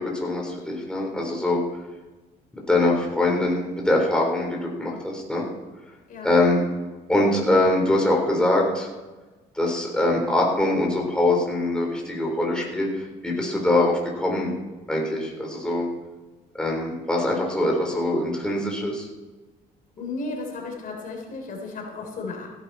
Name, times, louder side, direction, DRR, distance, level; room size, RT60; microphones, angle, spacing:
voice 1, 0.0-1.6 2.7-5.4 6.2-6.6 7.1-8.9 9.5-14.5 14.9-15.9 16.6-19.1, left 1 dB, 5° left, -1 dB, 4.0 m, -23 dB
voice 2, 20.0-22.5, left 3 dB, 55° left, 1 dB, 3.6 m, -34 dB
16.0 x 11.0 x 4.3 m, 1.2 s
cardioid pair, 110°, 17 cm